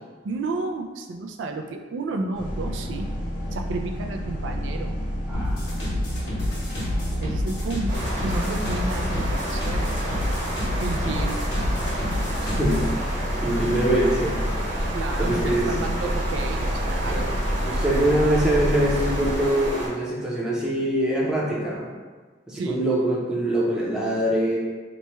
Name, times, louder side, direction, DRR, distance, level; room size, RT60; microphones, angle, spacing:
voice 1, 0.2-3.1 3.5-5.0 7.2-9.9 10.8-11.4 14.9-17.4 22.6-22.9, right 3 dB, 85° right, 3 dB, 0.3 m, -32 dB
sound 1, 2.3-19.3, equal, 50° left, 0.9 m, -30 dB
sound 2, 5.3-12.9, left 1 dB, 75° left, 1.4 m, -29 dB
voice 2, 5.3-5.6 12.4-14.4 15.2-15.7 17.1-17.2 17.6-21.9 22.5-24.6, right 1 dB, 5° right, -5 dB, 0.6 m, -24 dB
sound 3, 7.9-19.9, right 1 dB, 45° right, 1.2 m, -30 dB
3.0 x 2.2 x 4.2 m, 1.4 s
head